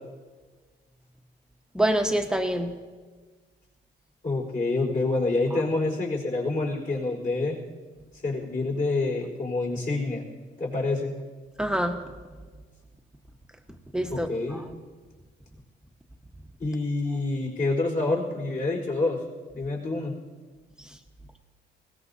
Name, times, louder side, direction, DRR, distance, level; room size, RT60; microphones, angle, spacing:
voice 1, 1.7-2.7 11.6-12.0 13.9-14.6, right 1 dB, 5° right, 4 dB, 1.3 m, -26 dB
voice 2, 4.2-7.6 8.2-10.2 10.6-11.1 14.1-14.6 16.6-19.2 19.5-20.1, left 2 dB, 40° left, -2 dB, 4.4 m, -27 dB
21.0 x 17.5 x 2.8 m, 1.4 s
cardioid pair, 90°, 20 cm